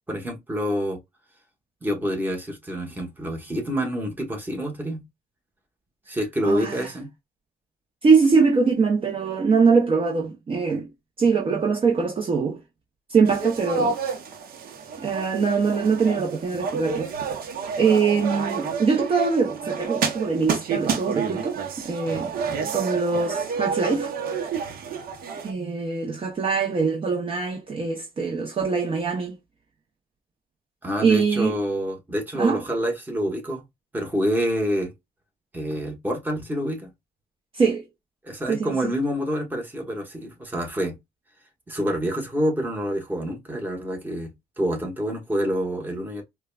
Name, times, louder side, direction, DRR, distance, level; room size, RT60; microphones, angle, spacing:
voice 1, 0.1-1.0 1.8-5.0 6.1-7.1 22.4-22.7 30.8-33.6 33.9-34.9 35.5-36.9 38.2-41.0 41.7-46.2, equal, 10° right, 1.2 m, -27 dB
voice 2, 6.4-6.8 8.0-10.9 11.2-12.6 13.1-14.0 15.0-17.1 17.8-21.6 21.8-22.3 22.7-24.1 25.4-29.3 31.0-31.5 32.4-32.6 37.5-37.8 38.5-38.7, right 5 dB, 30° right, 0.9 m, -22 dB
sound 1, 13.3-25.5, right 5 dB, 60° right, 0.9 m, -30 dB
4.6 x 2.3 x 2.3 m
cardioid pair, 110°, 17 cm